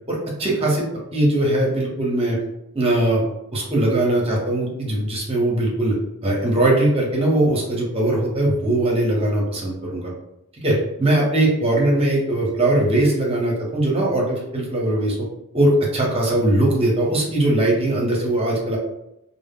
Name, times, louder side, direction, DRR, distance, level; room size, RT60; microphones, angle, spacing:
voice 1, 0.1-0.8 1.1-2.4 2.7-3.2 3.5-5.9 6.2-10.1 10.6-15.2 15.5-18.8, right 1 dB, 25° right, -2 dB, 0.7 m, -20 dB
2.0 x 2.0 x 3.5 m, 0.84 s
head